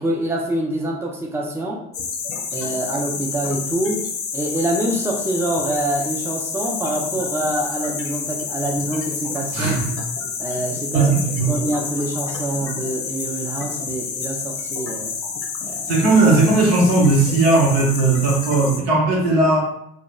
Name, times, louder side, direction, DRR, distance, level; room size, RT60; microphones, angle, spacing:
voice 1, 0.0-1.8 2.5-4.1 4.3-9.8 10.4-11.1 11.5-15.1 15.6-15.9, right 1 dB, 10° right, -1 dB, 0.5 m, -25 dB
sound 1, 1.9-18.8, left 5 dB, 45° left, 0.6 m, -29 dB
voice 2, 9.5-10.0 10.9-11.5 15.9-19.6, right 3 dB, 80° right, -3 dB, 0.8 m, -17 dB
2.8 x 2.1 x 2.3 m, 0.74 s
hypercardioid pair, 55°, 32 cm